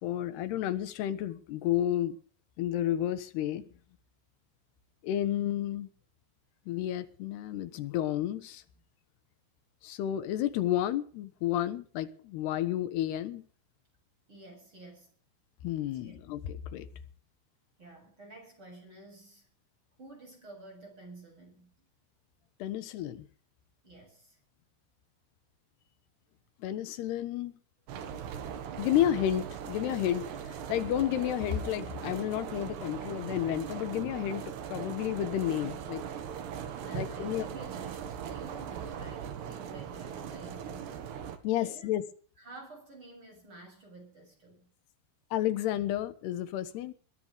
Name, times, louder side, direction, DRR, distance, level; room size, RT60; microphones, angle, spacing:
voice 1, 0.0-2.2 2.6-3.6 5.0-5.9 6.7-8.6 9.8-13.4 15.6-16.9 22.6-23.3 26.6-27.5 28.8-36.0 36.9-37.5 41.4-42.0 45.3-46.9, left 12 dB, 75° left, 3.3 m, -31 dB
voice 2, 14.3-15.1 15.8-16.1 17.8-19.5 20.0-21.7 23.8-24.4 36.8-40.9 41.6-41.9 42.4-44.7, right 2 dB, 30° right, 7.8 m, -50 dB
sound 1, 27.9-41.4, right 8 dB, 80° right, 3.9 m, -39 dB
21.5 x 16.5 x 3.6 m
omnidirectional pair, 4.8 m